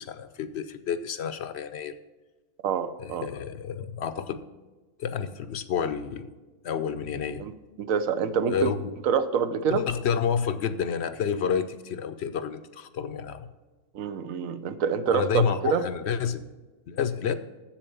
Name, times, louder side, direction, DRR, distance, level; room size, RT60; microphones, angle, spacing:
voice 1, 0.0-1.9 3.0-4.4 5.0-6.3 6.6-7.4 8.5-8.9 9.7-13.5 15.1-16.4 16.9-17.3, left 7 dB, 65° left, 11 dB, 0.7 m, -29 dB
voice 2, 2.6-3.3 7.4-8.7 9.0-9.9 13.9-15.8, right 7 dB, 85° right, 12 dB, 1.1 m, -26 dB
7.4 x 7.1 x 6.9 m, 1.2 s
omnidirectional pair, 1.4 m